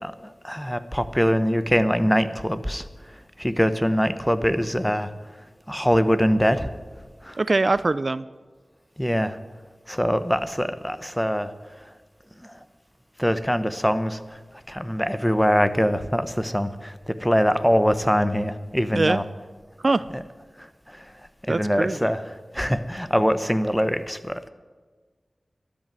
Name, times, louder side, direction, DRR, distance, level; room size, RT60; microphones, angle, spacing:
voice 1, 0.0-5.1 5.7-6.7 7.2-7.4 9.0-9.4 9.9-11.9 12.4-12.6 13.2-14.4 14.7-19.2 20.1-20.2 20.6-21.1 21.5-24.5, equal, 5° left, 11 dB, 1.0 m, -23 dB
voice 2, 7.4-8.2 18.9-19.2 19.8-20.1 21.5-22.0, right 3 dB, 55° right, 16 dB, 0.4 m, -22 dB
12.5 x 8.3 x 9.0 m, 1.4 s
wide cardioid pair, 50°, 0 cm